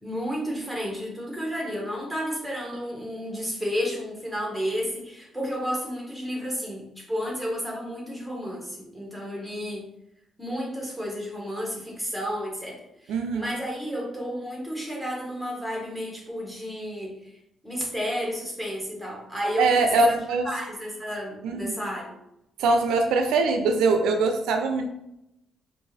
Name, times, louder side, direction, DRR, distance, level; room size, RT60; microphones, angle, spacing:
voice 1, 0.0-9.9 10.4-17.2 17.6-20.1 20.4-22.1, equal, ahead, -2 dB, 1.4 m, -32 dB
voice 2, 13.1-13.5 19.6-20.5 21.4-21.7 22.6-24.9, right 3 dB, 90° right, 5 dB, 0.5 m, -22 dB
4.4 x 2.5 x 3.3 m, 0.82 s
cardioid pair, 90°, 0 cm